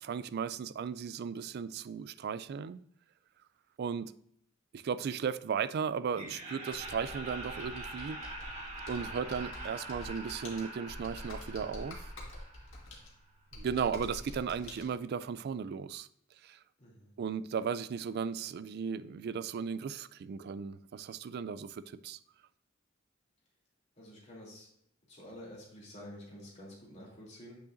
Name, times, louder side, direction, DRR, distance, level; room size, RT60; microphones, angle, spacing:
voice 1, 0.0-2.8 3.8-4.1 4.7-8.2 8.9-12.1 13.5-16.1 16.4-16.6 17.2-22.2, right 6 dB, 55° right, 0.3 m, -36 dB
Laughter, 6.1-13.1, right 2 dB, 35° right, 1.7 m, -44 dB
Computer keyboard, 6.7-14.8, left 1 dB, 85° left, 1.7 m, -47 dB
voice 2, 16.8-17.1 24.0-24.7 25.1-27.6, equal, 35° left, 2.9 m, -49 dB
8.4 x 6.2 x 2.6 m
head